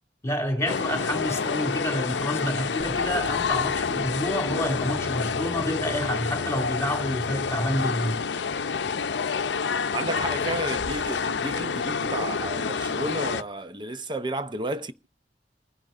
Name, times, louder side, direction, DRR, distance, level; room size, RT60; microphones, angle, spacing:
voice 1, 0.2-8.2, left 1 dB, 15° left, 2.7 m, -28 dB
sound 1, 0.7-13.4, left 5 dB, 70° left, 0.6 m, -28 dB
Bass guitar, 2.8-9.0, equal, 45° right, 7.3 m, -51 dB
voice 2, 9.9-14.9, right 2 dB, 25° right, 0.7 m, -32 dB
28.0 x 10.5 x 2.5 m
head